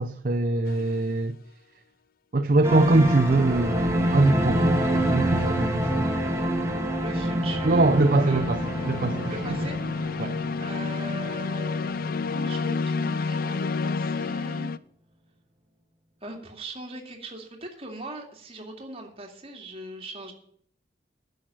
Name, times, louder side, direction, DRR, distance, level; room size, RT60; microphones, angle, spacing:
voice 1, 0.0-1.3 2.3-6.1 7.6-8.6 8.9-9.3 10.2-10.4, right 2 dB, 50° right, 0.7 m, -22 dB
sound 1, 0.7-1.0 6.9-14.8, left 4 dB, 55° left, 0.5 m, -30 dB
sound 2, 2.6-11.8 12.1-12.2, equal, 15° right, 1.9 m, -27 dB
voice 2, 7.0-8.6 9.2-9.8 10.3-14.7 16.2-20.3, right 2 dB, 35° right, 2.3 m, -40 dB
10.5 x 6.6 x 9.0 m
head